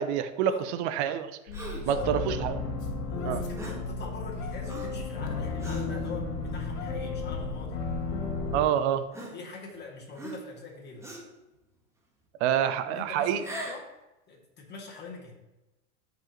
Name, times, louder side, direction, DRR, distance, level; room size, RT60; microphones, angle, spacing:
voice 1, 0.0-1.4 1.9-2.6 3.2-3.4 8.5-9.1 12.4-13.4, right 9 dB, 55° right, 11 dB, 0.9 m, -27 dB
sound 1, 1.5-8.6, left 3 dB, 60° left, 2.7 m, -33 dB
Gasp, 1.5-2.0 3.5-3.9 4.7-5.0 5.6-5.9 6.6-6.7 7.8-7.9 9.1-9.8 10.1-10.6 11.0-11.4 13.3-13.9, right 1 dB, 5° right, 1.5 m, -41 dB
voice 2, 1.7-2.1 3.1-7.8 9.3-11.1 12.6-13.9 14.3-15.3, left 3 dB, 25° left, -2 dB, 2.8 m, -43 dB
13.0 x 5.4 x 3.2 m, 1.0 s
hypercardioid pair, 115°, 40 cm